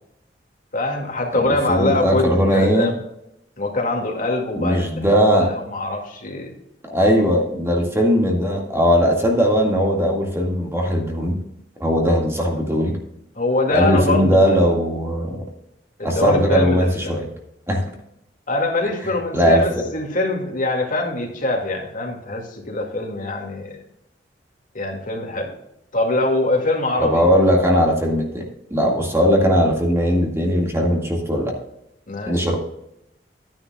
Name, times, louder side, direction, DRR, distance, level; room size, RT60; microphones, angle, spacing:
voice 1, 0.7-3.0 3.6-4.9 5.3-6.5 13.4-14.7 16.0-17.2 18.5-23.8 24.7-25.5 25.9-27.3 32.1-32.5, left 2 dB, 50° left, 0 dB, 2.3 m, -23 dB
voice 2, 1.3-2.9 4.6-5.5 6.9-11.4 11.8-13.0 13.7-15.4 16.0-17.3 17.7-17.8 19.3-19.7 27.0-31.5 32.3-32.6, equal, 15° right, 0 dB, 2.0 m, -19 dB
11.5 x 10.5 x 2.4 m, 0.81 s
head